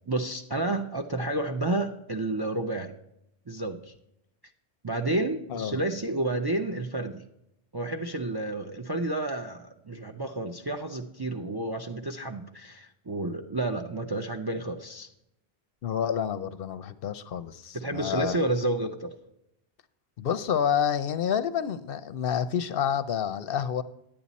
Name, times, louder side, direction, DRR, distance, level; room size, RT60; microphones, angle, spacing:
voice 1, 0.1-2.9 3.5-3.9 4.8-7.2 7.7-15.1 17.7-19.1, right 2 dB, 35° right, 5 dB, 0.4 m, -30 dB
voice 2, 15.8-18.4 20.2-23.8, left 8 dB, 65° left, 13 dB, 0.7 m, -29 dB
10.0 x 8.6 x 4.1 m, 0.82 s
omnidirectional pair, 1.1 m